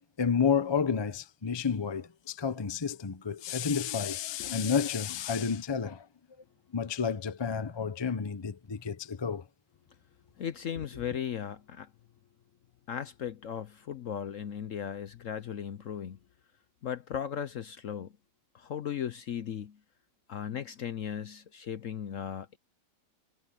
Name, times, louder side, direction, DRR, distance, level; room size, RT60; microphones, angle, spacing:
voice 1, 0.2-6.1 6.7-9.4 10.7-10.8, left 6 dB, 40° left, 0.3 m, -30 dB
voice 2, 10.4-11.9 12.9-16.2 16.8-18.1 18.5-19.8 20.3-22.6, left 9 dB, 60° left, 0.8 m, -37 dB
omnidirectional pair, 2.0 m